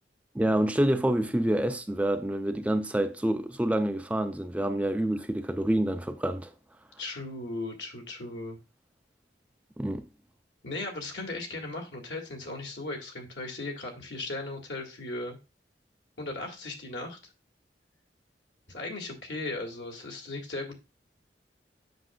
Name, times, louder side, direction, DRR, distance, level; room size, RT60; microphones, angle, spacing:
voice 1, 0.4-6.5 9.8-10.0, right 1 dB, 10° right, 0.4 m, -27 dB
voice 2, 7.0-8.6 10.6-15.4 16.2-17.2 18.7-20.7, left 2 dB, 90° left, 2.0 m, -37 dB
7.9 x 6.1 x 2.3 m
head